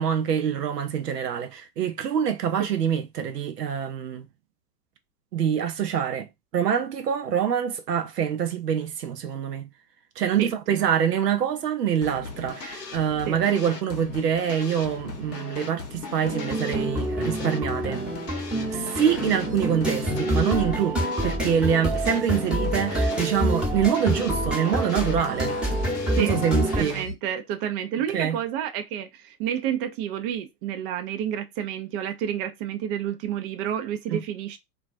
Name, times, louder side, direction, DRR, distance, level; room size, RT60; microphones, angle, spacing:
voice 1, 0.0-4.3 5.3-6.3 6.5-9.7 10.2-18.0 18.7-25.6 26.2-27.0 28.1-28.4 34.1-34.2, right 8 dB, 80° right, 0.6 m, -25 dB
sound 1, 12.0-27.1, left 4 dB, 80° left, 0.7 m, -38 dB
sound 2, 16.2-26.8, right 1 dB, ahead, 0.9 m, -27 dB
voice 2, 26.8-34.6, right 9 dB, 40° right, 0.5 m, -30 dB
2.3 x 2.3 x 2.4 m
figure-of-eight pair, 90°, 47 cm